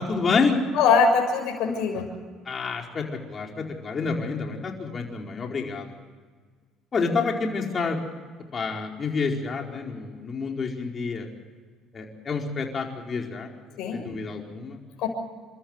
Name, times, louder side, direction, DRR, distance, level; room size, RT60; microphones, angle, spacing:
voice 1, 0.0-0.6 2.5-5.9 6.9-8.0 8.5-11.3 11.9-13.5 13.9-14.8, left 4 dB, 40° left, 1 dB, 4.7 m, -28 dB
voice 2, 0.7-2.1 13.8-14.1 15.0-15.1, left 5 dB, 75° left, 3 dB, 6.6 m, -22 dB
30.0 x 14.0 x 8.3 m, 1.5 s
supercardioid pair, 90°, 0 cm